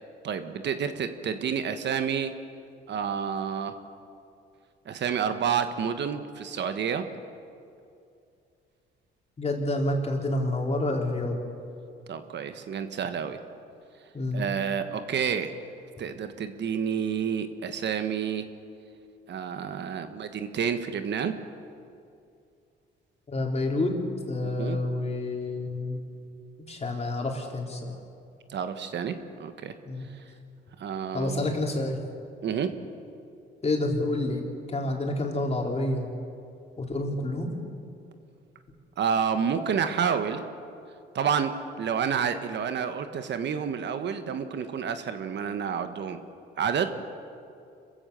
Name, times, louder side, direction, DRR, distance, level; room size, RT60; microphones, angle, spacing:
voice 1, 0.2-2.3 2.9-3.8 4.8-7.1 12.1-13.4 14.3-15.6 16.0-18.4 19.3-21.3 24.4-24.8 28.5-29.1 29.4-29.7 30.8-31.5 32.4-32.7 39.0-40.4 41.1-46.2 46.6-46.9, right 7 dB, 60° right, 9 dB, 1.4 m, -29 dB
voice 2, 9.4-11.4 14.1-14.5 23.3-23.9 24.3-26.0 26.7-28.0 29.9-30.1 31.1-32.0 33.6-36.1 36.8-37.5, left 2 dB, 30° left, 1 dB, 3.8 m, -28 dB
26.5 x 15.5 x 6.9 m, 2.5 s
cardioid pair, 90°, 20 cm